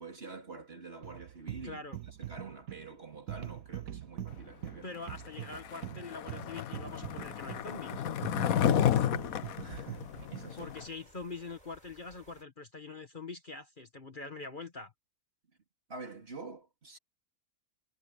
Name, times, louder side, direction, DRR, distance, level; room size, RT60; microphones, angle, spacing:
voice 1, 0.0-4.9 8.4-10.7 15.9-17.0, right 3 dB, 45° right, 3.3 m, -48 dB
sound 1, 1.0-10.6, right 11 dB, 85° right, 1.2 m, -43 dB
voice 2, 1.6-2.0 4.8-8.0 10.6-14.9, left 3 dB, 35° left, 1.6 m, -44 dB
Skateboard, 5.4-10.9, left 10 dB, 85° left, 1.3 m, -31 dB
sound 2, 6.8-12.4, right 1 dB, 25° right, 7.0 m, -60 dB
omnidirectional pair, 1.5 m